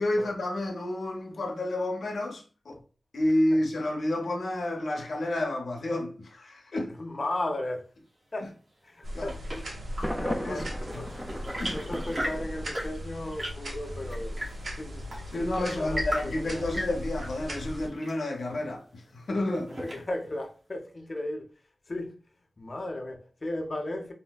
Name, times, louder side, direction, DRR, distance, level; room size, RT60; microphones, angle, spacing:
voice 1, 0.0-2.8 3.1-7.0 9.1-9.3 10.4-10.7 10.9-11.0 11.6-11.7 15.3-19.7, left 1 dB, 90° left, 0.7 m, -30 dB
voice 2, 7.0-7.9 8.3-8.5 8.8-9.7 9.9-11.1 11.7-14.5 14.7-16.7 19.8-21.5 21.9-22.2 22.6-24.1, left 1 dB, 50° left, 0.6 m, -36 dB
Chirp tweet / Engine / Tap, 8.8-20.3, equal, 55° right, 1.6 m, -39 dB
sound 1, 9.0-17.9, equal, 85° right, 0.8 m, -38 dB
Thunder, 10.0-13.0, equal, 5° left, 0.4 m, -36 dB
4.1 x 2.1 x 2.2 m
wide cardioid pair, 65°, 0 cm